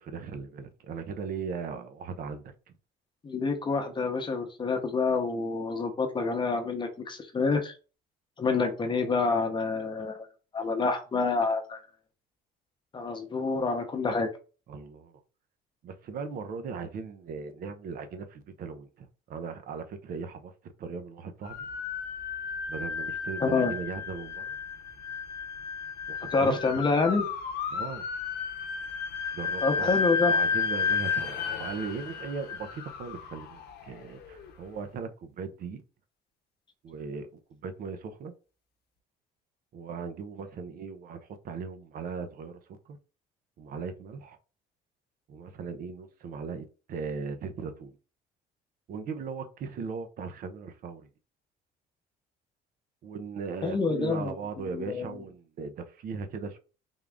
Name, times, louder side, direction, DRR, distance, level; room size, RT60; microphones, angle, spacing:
voice 1, 0.0-2.5 14.7-15.1 15.8-21.6 22.7-24.5 26.1-26.6 27.7-28.1 29.3-35.8 36.8-38.3 39.7-42.6 42.9-43.0 43.6-44.4 45.3-48.0 48.9-51.1 53.0-56.6, right 5 dB, 60° right, 0.6 m, -38 dB
voice 2, 3.2-7.7 8.4-10.3 10.5-11.8 12.9-14.3 23.4-23.7 26.3-27.3 29.6-30.3 53.6-55.2, left 4 dB, 30° left, 0.8 m, -27 dB
sound 1, 21.4-34.5, left 5 dB, 70° left, 0.7 m, -32 dB
3.6 x 2.4 x 3.4 m
cardioid pair, 110°, 17 cm